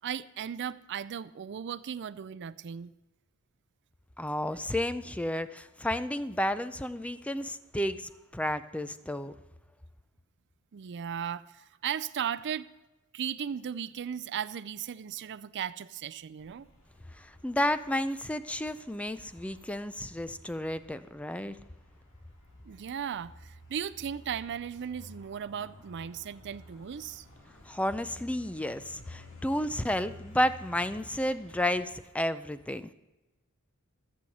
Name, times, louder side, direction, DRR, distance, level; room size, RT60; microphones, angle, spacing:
voice 1, 0.0-2.9 10.7-12.7 13.1-16.7 22.7-27.3, right 8 dB, 55° right, 14 dB, 0.4 m, -36 dB
voice 2, 4.2-9.3 17.1-21.6 27.7-32.9, left 1 dB, 5° left, 12 dB, 0.4 m, -32 dB
sound 1, 16.4-32.0, left 1 dB, 65° left, 2.3 m, -53 dB
14.5 x 5.5 x 7.8 m, 1.1 s
head